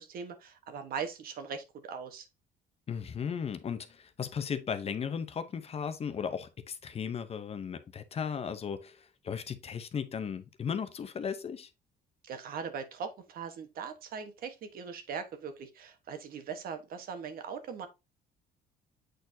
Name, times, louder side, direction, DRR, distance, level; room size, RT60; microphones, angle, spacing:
voice 1, 0.0-2.3 12.2-17.9, right 6 dB, 60° right, 1.2 m, -40 dB
voice 2, 2.9-11.7, left 7 dB, 35° left, 0.7 m, -36 dB
7.8 x 4.5 x 2.7 m
cardioid pair, 110°, 17 cm